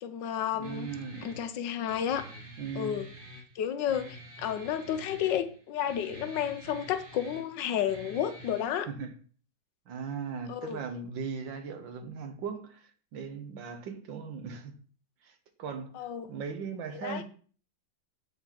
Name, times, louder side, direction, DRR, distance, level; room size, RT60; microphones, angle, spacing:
voice 1, 0.0-2.2 2.7-3.1 3.5-8.9 10.5-10.8 15.9-16.3 16.9-17.2, left 9 dB, 75° left, 1.3 m, -32 dB
Guitar, 0.6-8.6, right 1 dB, 30° right, 1.5 m, -48 dB
voice 2, 0.6-1.3 2.6-3.1 8.9-9.1 9.9-14.7 15.2-15.9 16.3-17.2, right 5 dB, 80° right, 1.8 m, -38 dB
7.7 x 4.1 x 5.7 m
omnidirectional pair, 2.0 m